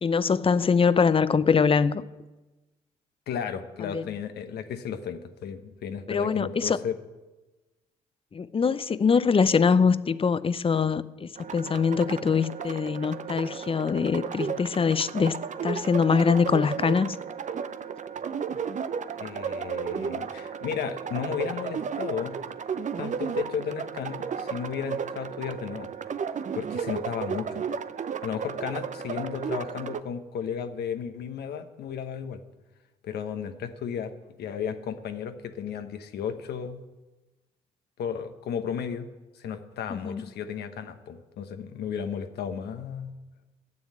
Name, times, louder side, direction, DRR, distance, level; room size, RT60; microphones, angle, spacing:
voice 1, 0.0-2.0 3.9-4.1 6.1-6.8 8.3-15.4 15.6-17.2 39.9-40.2, left 5 dB, 30° left, 16 dB, 0.6 m, -23 dB
voice 2, 3.3-6.9 19.2-22.3 23.0-25.9 26.5-27.6 28.2-32.4 33.0-34.1 34.4-36.8 38.0-39.1 39.4-43.1, left 7 dB, 65° left, 8 dB, 1.0 m, -34 dB
sound 1, 11.3-30.0, right 6 dB, 45° right, 0.7 m, -34 dB
9.6 x 7.2 x 8.6 m, 1.1 s
hypercardioid pair, 50°, 18 cm